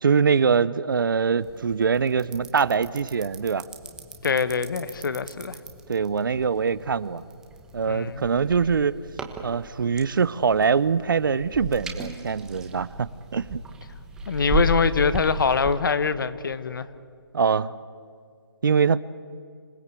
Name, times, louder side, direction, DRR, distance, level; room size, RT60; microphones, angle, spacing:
voice 1, 0.0-3.7 5.9-7.2 7.7-9.0 9.4-13.6 17.3-17.7 18.6-19.0, right 6 dB, 55° right, 0.7 m, -23 dB
sound 1, 1.4-15.8, right 1 dB, 5° right, 1.0 m, -35 dB
voice 2, 4.2-5.6 7.9-8.2 14.3-16.9, left 5 dB, 55° left, 1.1 m, -24 dB
26.5 x 16.5 x 8.3 m
hypercardioid pair, 165°, 13 cm